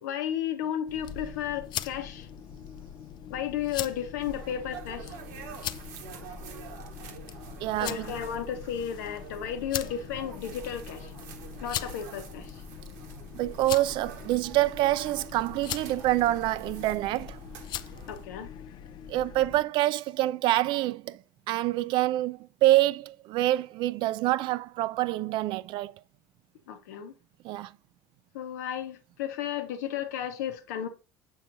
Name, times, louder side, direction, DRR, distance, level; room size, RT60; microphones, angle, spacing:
voice 1, 0.0-2.3 3.3-5.1 7.8-11.1 11.6-12.5 18.1-18.5 26.7-27.1 28.3-30.9, left 9 dB, 80° left, 0.9 m, -33 dB
sound 1, 0.9-19.6, left 10 dB, 55° left, 0.4 m, -41 dB
sound 2, 4.2-18.3, right 5 dB, 80° right, 1.0 m, -46 dB
voice 2, 7.6-8.2 13.3-17.4 19.1-21.2 21.5-25.9 27.4-27.7, right 16 dB, 60° right, 0.3 m, -26 dB
7.1 x 5.6 x 2.5 m
hypercardioid pair, 75°, 9 cm